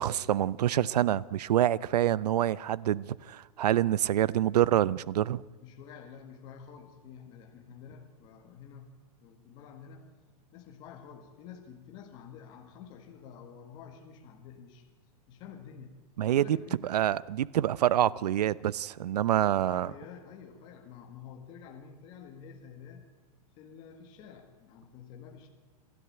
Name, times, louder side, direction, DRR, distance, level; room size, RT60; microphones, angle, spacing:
voice 1, 0.0-5.4 16.2-16.6 16.8-19.9, right 11 dB, 85° right, 0.7 m, -26 dB
voice 2, 5.6-10.1 10.5-14.9 15.3-16.0 16.3-17.0 19.6-23.1 23.6-25.5, left 7 dB, 20° left, 1.7 m, -49 dB
27.0 x 13.0 x 8.7 m
supercardioid pair, 180°, 20 cm